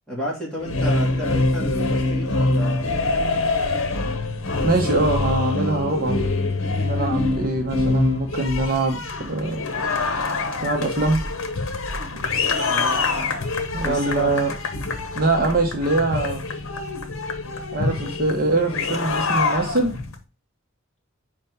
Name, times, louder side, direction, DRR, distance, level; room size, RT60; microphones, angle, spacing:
voice 1, 0.1-2.9 12.7-13.4 13.8-14.4 15.4-15.5, right 1 dB, 5° left, -5 dB, 3.0 m, -32 dB
sound 1, 0.6-20.2, left 3 dB, 75° left, 1.2 m, -25 dB
voice 2, 4.6-6.2 6.8-9.0 9.3-9.6 10.6-11.2 13.7-14.5 15.1-16.4 17.7-20.0, right 2 dB, 45° right, 2 dB, 1.1 m, -23 dB
5.2 x 4.6 x 5.6 m, 0.30 s
head